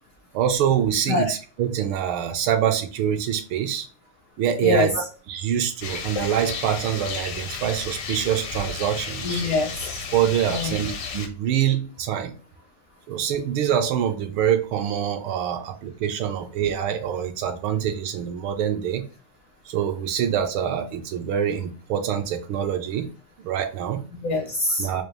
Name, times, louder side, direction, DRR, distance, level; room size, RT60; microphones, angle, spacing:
voice 1, 0.3-3.9 4.4-9.4 10.1-12.3 13.1-19.0 19.7-23.1 23.4-24.0 24.8-25.0, right 9 dB, 75° right, 6 dB, 1.4 m, -25 dB
Rain, 5.8-11.3, left 5 dB, 80° left, 1.7 m, -33 dB
voice 2, 9.2-10.0 10.5-10.8 24.2-24.9, left 3 dB, 65° left, 0 dB, 0.8 m, -24 dB
4.9 x 2.3 x 3.1 m, 0.37 s
omnidirectional pair, 2.3 m